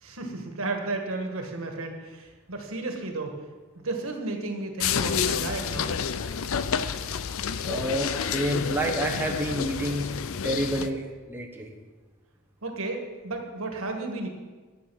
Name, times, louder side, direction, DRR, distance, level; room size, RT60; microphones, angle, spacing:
voice 1, 0.0-3.3 3.7-5.9 12.6-14.3, right 2 dB, 70° right, 3 dB, 1.6 m, -33 dB
sound 1, 4.8-10.9, left 7 dB, 70° left, 0.5 m, -29 dB
voice 2, 7.6-10.0 10.4-11.0 11.3-11.7, right 1 dB, 10° right, 0 dB, 1.0 m, -28 dB
9.9 x 8.4 x 6.3 m, 1.4 s
head